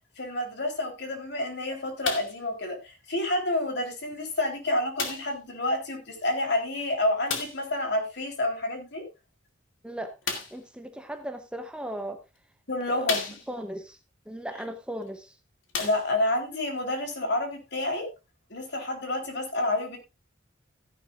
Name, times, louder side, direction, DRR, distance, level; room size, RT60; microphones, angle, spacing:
voice 1, 0.2-9.0 12.7-13.4 15.8-18.1 18.5-20.0, left 1 dB, 60° left, 4 dB, 3.6 m, -29 dB
sound 1, 2.0-2.4 3.3-3.4 5.0-5.4 7.3-7.7 10.2-10.7 11.6-11.7 12.3-12.4 13.0-13.7 15.0-15.1 15.6-16.4 17.2-17.3, left 5 dB, 85° left, 2.5 m, -33 dB
voice 2, 9.8-10.2 10.5-12.2 12.9-13.1 13.5-14.0 14.3-15.4, right 1 dB, 5° right, 7 dB, 0.8 m, -37 dB
15.0 x 10.5 x 2.5 m, 0.25 s
head